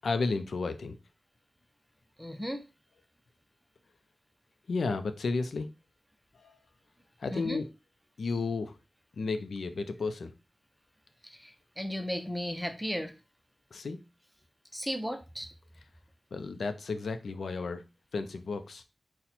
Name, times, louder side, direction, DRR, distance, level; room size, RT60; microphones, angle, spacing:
voice 1, 0.0-1.0 4.7-5.7 6.4-6.5 7.2-7.7 8.2-8.8 9.2-10.3 13.7-14.0 16.3-17.8 18.1-18.8, left 4 dB, 85° left, 0.4 m, -32 dB
voice 2, 2.2-2.6 7.3-7.6 11.2-13.1 14.7-15.5, equal, ahead, 0.5 m, -35 dB
4.1 x 2.1 x 4.2 m
wide cardioid pair, 95°, 0 cm